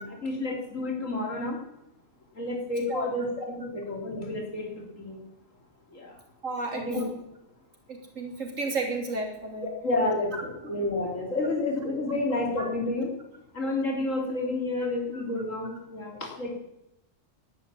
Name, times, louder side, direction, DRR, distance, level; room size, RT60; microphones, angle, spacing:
voice 1, 0.0-1.6 2.4-5.2 5.9-6.1 6.7-7.1 9.6-13.1 13.5-16.6, left 2 dB, 90° left, 0 dB, 3.8 m, -30 dB
voice 2, 6.4-6.8 7.1-7.2 7.9-9.7 12.6-12.7, right 3 dB, 90° right, 2 dB, 3.5 m, -32 dB
11.5 x 10.5 x 9.7 m, 0.86 s
omnidirectional pair, 1.3 m